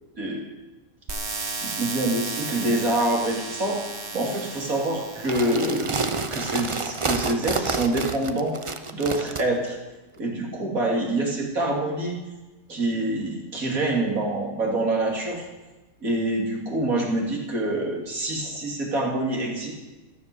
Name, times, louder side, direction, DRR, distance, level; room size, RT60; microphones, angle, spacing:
sound 1, 1.1-7.1, right 3 dB, 50° right, 1.7 m, -35 dB
voice 1, 1.6-3.8 4.1-6.0 6.3-8.6 8.9-9.8 10.2-12.2 12.7-15.5 16.0-19.7, right 2 dB, 75° right, -1 dB, 3.5 m, -26 dB
sound 2, 5.2-9.4, right 4 dB, 30° right, 0.7 m, -28 dB
14.0 x 13.5 x 7.1 m, 1.1 s
omnidirectional pair, 1.5 m